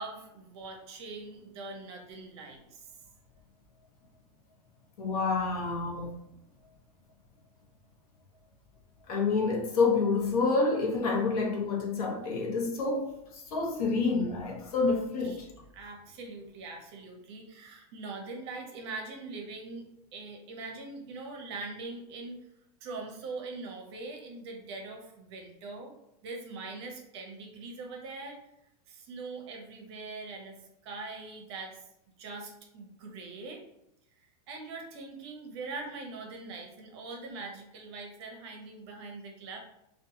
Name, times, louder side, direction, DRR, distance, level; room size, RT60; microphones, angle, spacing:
voice 1, 0.0-2.8 15.2-15.4 15.7-22.4 22.8-25.9 26.2-28.4 28.9-30.6 30.8-31.8 32.2-33.6 34.2-39.6, right 3 dB, 45° right, 0.6 m, -42 dB
voice 2, 5.0-6.1 9.1-15.5, left 4 dB, 65° left, 0.8 m, -28 dB
2.6 x 2.2 x 2.7 m
supercardioid pair, 170°, 20 cm